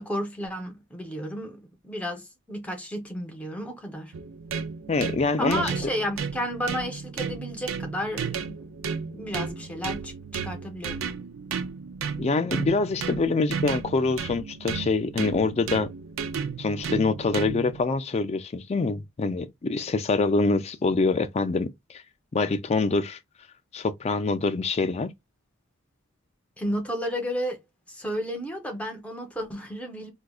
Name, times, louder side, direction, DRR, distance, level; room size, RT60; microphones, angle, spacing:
voice 1, 0.0-4.1 5.4-8.7 9.0-10.1 10.4-11.0 26.6-27.6 27.9-30.1, equal, 5° left, 0.8 m, -32 dB
sound 1, 4.1-17.8, right 6 dB, 70° right, 0.5 m, -33 dB
voice 2, 4.9-5.9 12.2-15.9 16.6-21.7 22.3-23.2 23.7-25.1, left 3 dB, 30° left, 0.4 m, -25 dB
4.7 x 2.2 x 2.3 m
head